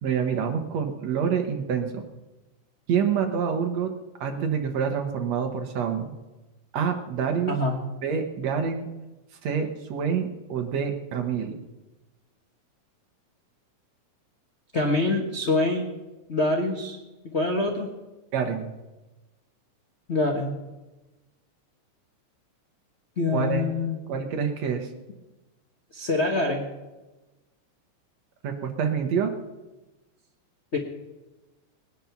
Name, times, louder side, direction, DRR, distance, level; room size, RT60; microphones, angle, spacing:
voice 1, 0.0-2.0 2.9-3.9 4.2-6.2 6.7-7.5 8.0-8.9 9.4-11.6 18.3-18.7 23.3-23.7 24.1-24.9 28.4-29.3, right 7 dB, 65° right, 5 dB, 2.3 m, -27 dB
voice 2, 14.7-15.9 16.3-17.0 17.3-17.9 20.1-20.6 23.2-24.0 25.9-26.7 30.7-30.8, left 2 dB, 55° left, 1 dB, 0.7 m, -25 dB
19.5 x 10.0 x 5.9 m, 1.1 s
omnidirectional pair, 3.5 m